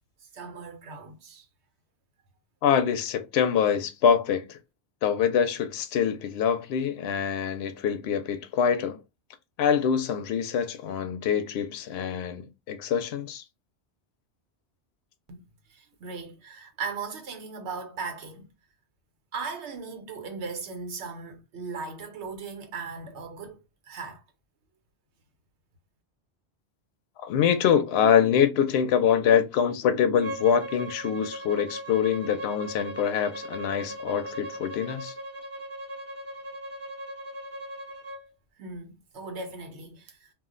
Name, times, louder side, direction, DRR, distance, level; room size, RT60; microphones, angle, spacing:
voice 1, 0.3-1.5 15.3-15.4 15.7-18.5 19.3-23.6 23.8-24.2 38.6-40.3, right 4 dB, 85° right, 1.1 m, -38 dB
voice 2, 2.6-4.6 5.0-9.0 9.6-13.4 27.2-35.1, left 8 dB, 70° left, 0.8 m, -25 dB
Bowed string instrument, 30.2-38.2, right 1 dB, 15° right, 0.7 m, -38 dB
2.4 x 2.1 x 3.6 m
omnidirectional pair, 1.1 m